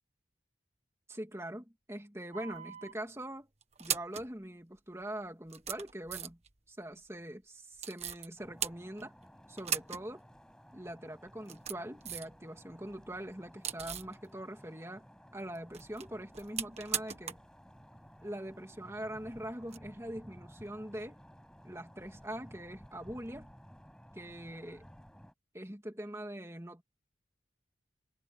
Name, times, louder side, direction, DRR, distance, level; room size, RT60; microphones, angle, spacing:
voice 1, 1.1-3.5 3.8-6.4 6.7-9.1 9.5-10.2 10.7-15.1 15.3-17.4 18.2-21.2 21.6-23.5 24.1-24.9 25.5-26.8, right 1 dB, 15° right, 2.7 m, -43 dB
sound 1, 2.3-2.9 3.6-4.3 5.0-5.1 5.5-6.5 7.8-8.3 8.6-9.2 9.6-10.1 10.3-10.4 11.3-12.4 12.7-14.2 15.6-17.5 17.8-17.9 19.6-19.8, right 9 dB, 35° right, 1.5 m, -39 dB
sound 2, 8.4-25.3, equal, 5° left, 6.6 m, -56 dB
head